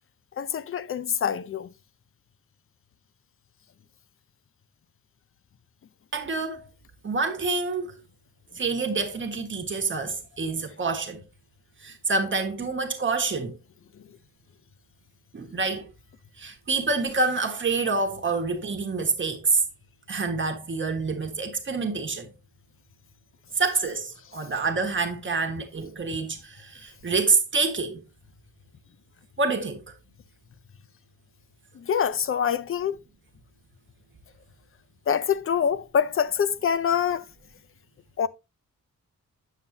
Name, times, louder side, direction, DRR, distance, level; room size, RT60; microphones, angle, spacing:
voice 1, 0.4-1.7 13.9-14.2 31.7-33.0 35.1-37.3 38.2-38.3, left 8 dB, 45° left, 0.5 m, -25 dB
voice 2, 6.1-6.6 7.0-8.0 8.5-11.2 11.8-13.5 15.3-15.9 16.4-19.6 20.1-22.3 23.6-28.0 29.4-29.8, right 4 dB, 40° right, 1.5 m, -27 dB
8.8 x 7.3 x 2.7 m
wide cardioid pair, 160°, 31 cm